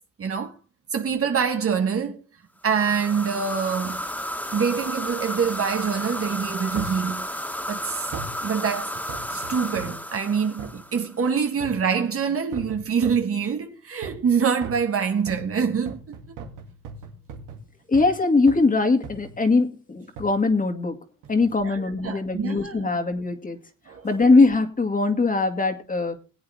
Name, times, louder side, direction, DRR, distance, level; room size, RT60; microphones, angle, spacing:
voice 1, 0.2-0.5 0.9-2.2 2.6-4.0 4.5-7.3 7.7-8.1 8.4-9.0 9.3-16.2 21.6-22.9 23.9-24.2, right 6 dB, 50° right, 1.6 m, -25 dB
sound 1, 2.7-11.2, equal, 5° left, 2.1 m, -33 dB
sound 2, 6.7-7.1 8.1-8.4 9.1-10.0 10.6-10.8 11.6-11.9 12.5-13.3 14.0-14.3 14.6-18.2 18.5-18.7 19.0-19.4 20.2-20.4 21.2-21.5 22.1-22.2, right 4 dB, 90° right, 2.5 m, -39 dB
voice 2, 17.9-21.0 21.3-23.6 24.0-26.2, left 3 dB, 25° left, 2.3 m, -21 dB
21.0 x 8.6 x 3.5 m
cardioid pair, 90°, 30 cm